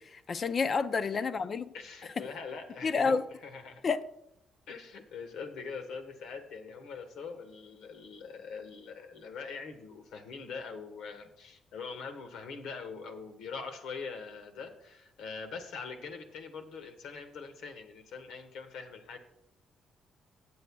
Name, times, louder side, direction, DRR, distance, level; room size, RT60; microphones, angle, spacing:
voice 1, 0.1-1.7 2.8-3.2 3.8-4.0, left 5 dB, 40° left, 0.6 m, -29 dB
voice 2, 1.7-3.8 4.7-19.2, left 5 dB, 80° left, 1.4 m, -43 dB
17.5 x 7.8 x 2.3 m
cardioid pair, 100°, 0 cm